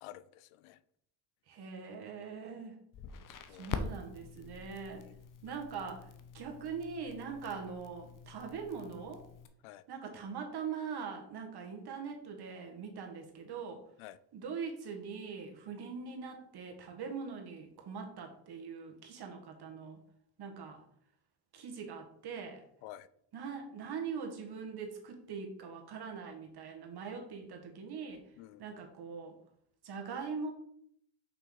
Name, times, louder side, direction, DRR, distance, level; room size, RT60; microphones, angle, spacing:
voice 1, 0.0-0.8 3.3-3.7 4.9-5.2 9.6-9.8 14.0-14.2 22.8-23.1 28.4-28.6, left 14 dB, 85° left, 0.6 m, -51 dB
voice 2, 1.5-2.7 3.6-5.1 5.4-6.1 6.3-9.2 9.9-13.8 14.3-20.0 20.4-20.8 21.5-22.6 23.3-28.2 28.6-29.3 29.8-30.5, right 5 dB, 50° right, 1.9 m, -42 dB
Crackle, 2.9-9.5, left 5 dB, 40° left, 0.8 m, -45 dB
6.0 x 5.7 x 4.0 m
supercardioid pair, 95°, 48 cm